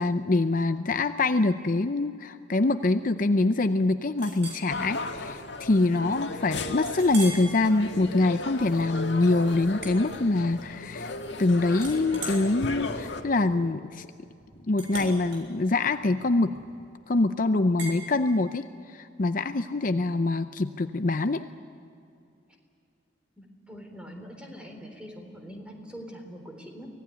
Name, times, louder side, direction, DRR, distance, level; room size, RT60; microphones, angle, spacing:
voice 1, 0.0-11.1 11.4-14.1 14.7-16.5 17.1-18.7 18.9-21.4, left 2 dB, 45° left, 10 dB, 0.6 m, -24 dB
Chink clink, 4.2-4.7 5.2-5.4 5.8-5.9 6.9-7.5 8.0-8.3 9.8-10.7 11.0-11.4 11.8-16.9 17.8-18.0, right 2 dB, 70° right, 7.0 m, -40 dB
sound 1, 4.7-13.2, left 2 dB, 65° left, 1.8 m, -36 dB
voice 2, 23.4-26.9, equal, 5° right, 2 dB, 3.8 m, -43 dB
25.0 x 18.0 x 9.5 m, 2.6 s
head